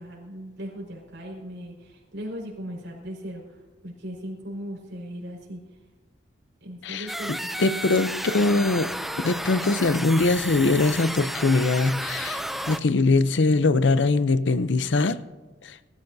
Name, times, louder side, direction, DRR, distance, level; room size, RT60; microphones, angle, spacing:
voice 1, 0.0-5.6 6.6-7.5, equal, 75° right, -1 dB, 4.7 m, -38 dB
voice 2, 6.8-8.9 9.2-15.2 15.6-15.8, left 3 dB, 75° left, 14 dB, 0.6 m, -22 dB
sound 1, 7.1-12.8, equal, ahead, 0.4 m, -32 dB
21.5 x 13.5 x 2.7 m, 1.3 s
head